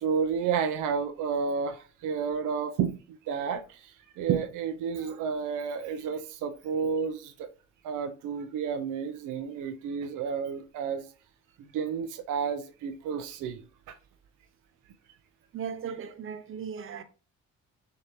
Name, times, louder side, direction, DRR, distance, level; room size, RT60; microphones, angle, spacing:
voice 1, 0.0-7.5 7.8-11.1 11.6-14.0, right 6 dB, 90° right, 0.6 m, -31 dB
voice 2, 15.5-17.0, right 7 dB, 45° right, 0.7 m, -37 dB
6.5 x 2.8 x 2.9 m
cardioid pair, 90°, 30 cm